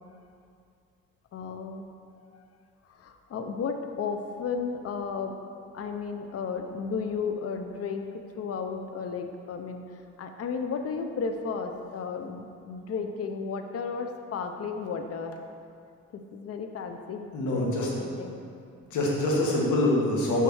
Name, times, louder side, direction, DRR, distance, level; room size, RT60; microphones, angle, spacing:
voice 1, 1.3-1.9 2.9-5.3 5.7-8.1 8.4-15.4 16.1-18.4, left 5 dB, 50° left, 6 dB, 0.7 m, -34 dB
voice 2, 17.3-17.9 18.9-20.4, left 1 dB, 75° left, -3 dB, 2.0 m, -25 dB
6.4 x 5.7 x 6.4 m, 2.4 s
cardioid pair, 90°, 30 cm